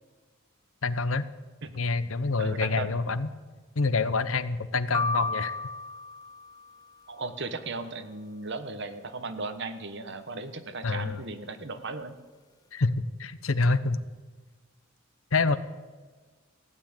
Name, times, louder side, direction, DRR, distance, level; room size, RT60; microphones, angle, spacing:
voice 1, 0.8-1.2 1.8-3.3 3.8-5.5 10.8-11.2 12.7-14.0 15.3-15.6, left 3 dB, 85° left, 14 dB, 0.9 m, -26 dB
voice 2, 2.4-3.0 7.1-12.1, right 3 dB, 60° right, 9 dB, 1.3 m, -36 dB
sound 1, 4.9-7.1, left 3 dB, 20° left, 0.5 m, -33 dB
15.5 x 9.7 x 8.9 m, 1.4 s
head